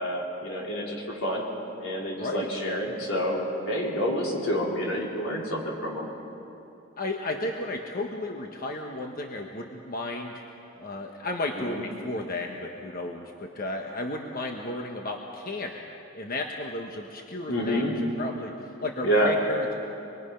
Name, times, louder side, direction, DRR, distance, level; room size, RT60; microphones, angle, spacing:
voice 1, 0.0-1.4 1.8-6.1 11.6-11.8 17.5-17.9 19.0-19.3, equal, 85° left, -3 dB, 4.5 m, -28 dB
voice 2, 2.2-2.5 7.0-10.4 10.8-15.9 16.1-18.5 18.8-19.7, left 2 dB, 45° left, 2 dB, 1.1 m, -33 dB
26.0 x 22.5 x 5.7 m, 2.9 s
head